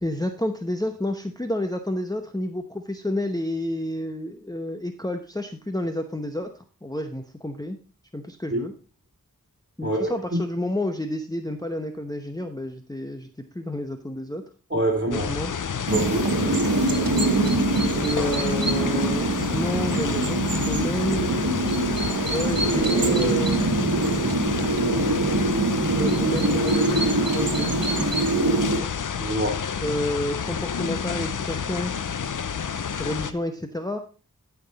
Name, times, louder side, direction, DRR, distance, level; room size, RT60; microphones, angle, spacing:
voice 1, 0.0-6.5 6.8-7.8 8.1-8.7 9.8-13.3 13.5-14.4 15.1-15.5 17.2-21.3 22.2-23.7 25.9-27.0 27.3-27.8 29.8-31.9 33.0-34.0, left 1 dB, 10° left, 0.9 m, -30 dB
voice 2, 9.8-10.1 14.7-15.3 15.9-16.3 29.2-29.6, right 1 dB, 35° right, 3.4 m, -25 dB
sound 1, 15.1-33.3, left 7 dB, 60° left, 0.6 m, -30 dB
sound 2, 15.9-28.8, right 2 dB, 80° right, 1.4 m, -23 dB
12.5 x 6.0 x 4.1 m
wide cardioid pair, 50°, 34 cm